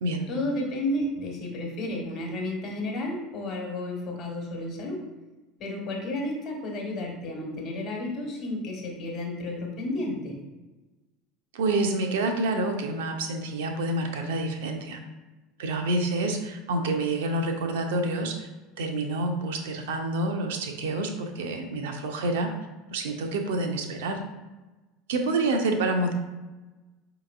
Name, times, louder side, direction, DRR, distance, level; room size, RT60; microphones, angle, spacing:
voice 1, 0.3-5.0 5.6-10.3, left 1 dB, 50° left, 0 dB, 1.1 m, -32 dB
voice 2, 11.5-15.0 15.6-18.5 18.8-22.5 22.9-24.2 25.1-26.1, right 2 dB, 70° right, 4 dB, 0.5 m, -28 dB
5.0 x 2.9 x 2.4 m, 1.1 s
figure-of-eight pair, 75°, 0 cm